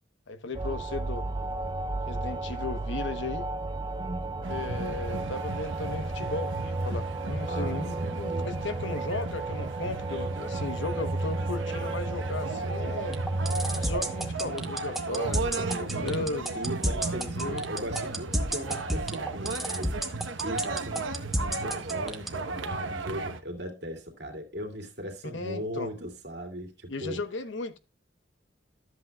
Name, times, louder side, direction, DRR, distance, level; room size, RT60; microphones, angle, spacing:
voice 1, 0.3-1.3 2.0-3.5 4.5-13.2 13.8-16.5 17.4-17.7 25.3-25.9 26.9-27.8, left 3 dB, 75° left, 1.0 m, -36 dB
sound 1, 0.5-14.3, right 2 dB, 20° right, 0.4 m, -33 dB
voice 2, 4.0-4.5 7.5-8.6 15.6-16.3 16.5-20.0 20.4-21.1 21.4-27.2, equal, 55° right, 2.4 m, -38 dB
sound 2, 4.4-23.4, right 3 dB, 80° right, 1.0 m, -35 dB
sound 3, 13.1-22.3, equal, ahead, 0.8 m, -30 dB
13.0 x 7.9 x 2.3 m
head